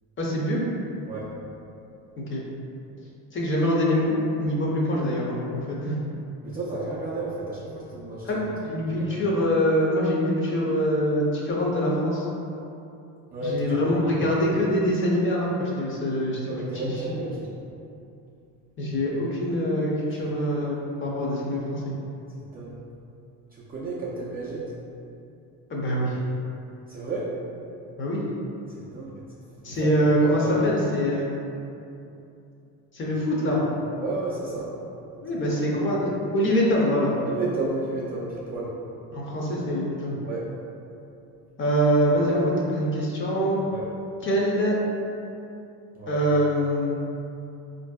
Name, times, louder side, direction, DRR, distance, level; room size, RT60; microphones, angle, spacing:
voice 1, 0.2-0.7 2.2-2.4 3.3-6.0 8.2-12.3 13.4-17.0 18.8-22.0 25.7-26.2 28.0-28.2 29.6-31.3 32.9-33.6 35.2-37.1 39.1-40.2 41.6-43.6 44.2-44.8 46.1-46.9, equal, 30° left, -4 dB, 0.6 m, -24 dB
voice 2, 6.4-8.3 9.1-9.2 13.3-14.3 16.5-17.5 20.5-20.7 22.5-22.7 23.5-24.7 26.9-27.3 28.8-29.2 29.6-29.9 30.2-30.7 34.0-34.7 37.2-38.7 40.2-40.5 43.7-43.9 46.0-46.2, right 2 dB, 25° right, -7 dB, 0.3 m, -32 dB
3.8 x 2.6 x 2.2 m, 2.7 s
cardioid pair, 120°, 40 cm